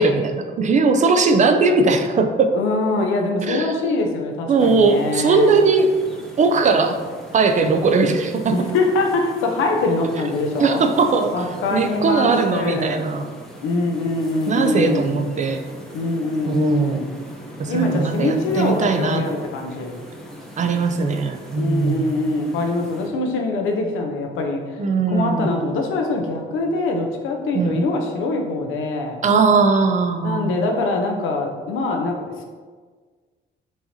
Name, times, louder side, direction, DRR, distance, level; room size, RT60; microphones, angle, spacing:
voice 1, 0.0-2.5 3.5-4.1 4.5-5.9 6.4-7.0 7.3-8.5 10.6-11.4 11.7-13.3 14.5-15.6 16.5-17.0 17.6-19.2 20.6-22.2 24.8-25.5 27.5-27.8 29.2-30.5, right 4 dB, 40° right, 6 dB, 0.4 m, -19 dB
voice 2, 2.5-5.5 8.5-10.8 11.3-13.1 13.6-15.2 15.9-17.1 17.7-20.0 21.5-24.8 25.1-29.2 30.2-32.4, left 2 dB, 85° left, 3 dB, 0.6 m, -23 dB
sound 1, 4.6-23.1, right 1 dB, ahead, 0.8 m, -39 dB
4.7 x 2.9 x 2.7 m, 1.5 s
cardioid pair, 90°, 20 cm